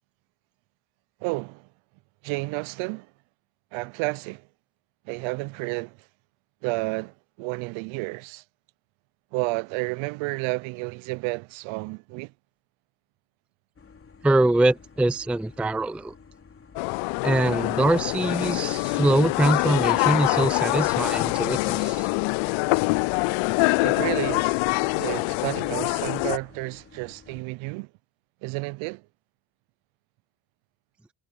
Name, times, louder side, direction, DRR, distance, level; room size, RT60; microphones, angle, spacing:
voice 1, 1.2-1.7 2.2-3.1 3.7-4.5 5.1-6.0 6.6-8.4 9.3-12.3 23.8-24.6 25.0-27.9 28.4-29.0, right 26 dB, 70° right, 0.6 m, -31 dB
sound 1, 13.8-27.4, left 5 dB, 25° left, 3.4 m, -52 dB
voice 2, 14.2-16.1 17.2-22.1, right 2 dB, 5° right, 0.5 m, -23 dB
sound 2, 16.8-26.4, left 26 dB, 70° left, 0.5 m, -24 dB
supercardioid pair, 95°, 48 cm